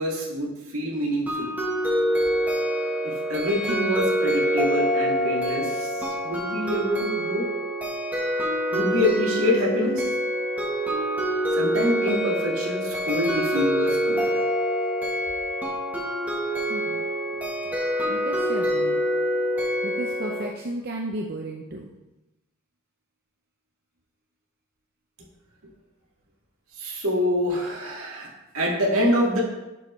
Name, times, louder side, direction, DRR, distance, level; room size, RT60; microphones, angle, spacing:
voice 1, 0.0-1.5 3.0-7.4 8.7-10.1 11.5-14.4 26.8-28.3 28.5-29.4, left 1 dB, 75° right, -3 dB, 2.0 m, -26 dB
sound 1, 1.3-20.4, equal, 5° right, 1.1 m, -26 dB
voice 2, 16.7-17.0 18.1-19.0 19.8-21.9, right 1 dB, 45° right, 0 dB, 0.6 m, -34 dB
10.5 x 5.1 x 3.2 m, 1.0 s
head